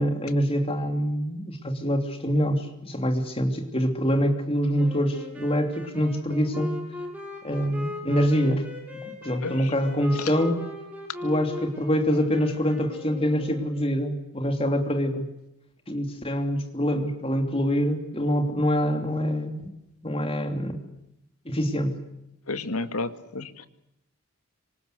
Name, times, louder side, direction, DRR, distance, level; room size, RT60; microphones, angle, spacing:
voice 1, 0.0-6.8 7.4-8.7 8.9-10.6 11.2-15.3 15.9-19.7 20.0-20.8 21.4-22.0, equal, 25° left, 6 dB, 3.1 m, -25 dB
sound 1, 4.7-13.9, left 1 dB, 5° right, 7.1 m, -39 dB
voice 2, 9.4-9.7 10.2-10.3 22.5-23.7, left 3 dB, 85° left, 10 dB, 2.0 m, -32 dB
26.5 x 25.5 x 8.1 m, 0.85 s
head